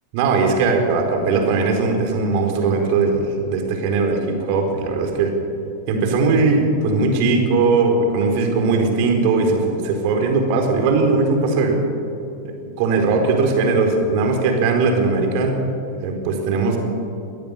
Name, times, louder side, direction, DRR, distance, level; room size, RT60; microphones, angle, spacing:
voice 1, 0.1-5.3 5.9-11.8 12.4-15.5 16.0-16.8, right 3 dB, 45° right, 3 dB, 4.3 m, -19 dB
23.0 x 17.5 x 6.9 m, 2.7 s
figure-of-eight pair, 90°, 0 cm